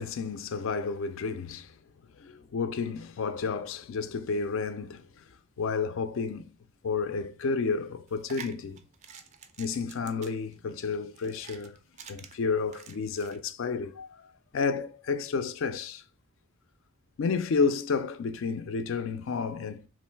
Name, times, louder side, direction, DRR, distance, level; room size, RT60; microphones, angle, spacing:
voice 1, 0.0-1.7 2.2-5.2 5.6-6.5 6.8-8.8 9.6-11.8 12.1-14.3 14.5-16.0 17.2-19.8, left 5 dB, 60° left, 0.4 m, -31 dB
sound 1, 8.1-13.4, right 6 dB, 30° right, 0.3 m, -49 dB
3.0 x 2.5 x 4.4 m
head